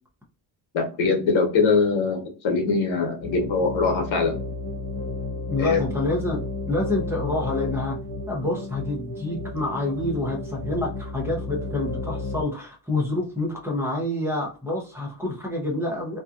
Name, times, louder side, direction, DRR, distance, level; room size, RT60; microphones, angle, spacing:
voice 1, 0.7-4.4 5.6-5.8, left 4 dB, 70° left, 3 dB, 1.0 m, -22 dB
sound 1, 3.2-12.4, left 3 dB, 45° left, 0.5 m, -32 dB
voice 2, 5.5-6.4 6.7-8.0 8.3-16.2, left 2 dB, 5° right, -1 dB, 0.6 m, -27 dB
2.7 x 2.3 x 2.4 m, 0.35 s
cardioid pair, 175°, 48 cm